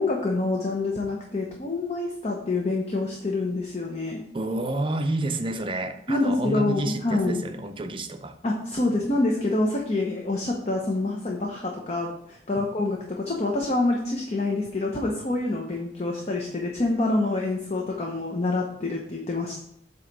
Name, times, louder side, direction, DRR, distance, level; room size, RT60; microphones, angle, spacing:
voice 1, 0.0-4.2 6.1-7.4 8.4-19.6, left 2 dB, 40° left, 0 dB, 0.8 m, -26 dB
voice 2, 4.3-8.4 12.6-12.7, right 2 dB, 30° right, 7 dB, 0.5 m, -29 dB
7.8 x 3.0 x 5.2 m, 0.72 s
head